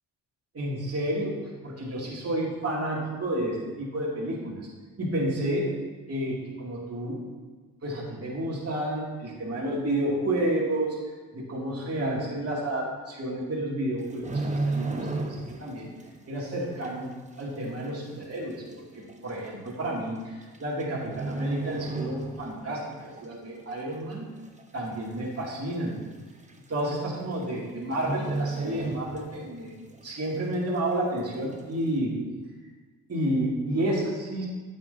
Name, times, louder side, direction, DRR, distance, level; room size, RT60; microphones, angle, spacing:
voice 1, 0.5-4.6 5.0-5.7 6.1-7.2 7.8-11.0 11.3-15.9 16.3-17.1 17.4-24.3 24.7-26.0 26.7-29.8 30.0-32.1 33.1-34.5, right 1 dB, 40° right, -5 dB, 2.3 m, -30 dB
sound 1, 14.0-15.7 16.0-16.3 16.8-16.9 17.8-17.9 18.2-18.3 19.1-19.3 20.4-20.8 21.1-22.7 23.0-23.2 23.7-24.2 24.6-24.7 24.9-25.0 25.4-25.5 26.5-26.6 26.9-27.2 27.4-27.6 27.9-29.6 29.9-30.0, right 3 dB, 20° right, 1.0 m, -32 dB
9.1 x 7.7 x 2.6 m, 1.4 s
supercardioid pair, 60°, 38 cm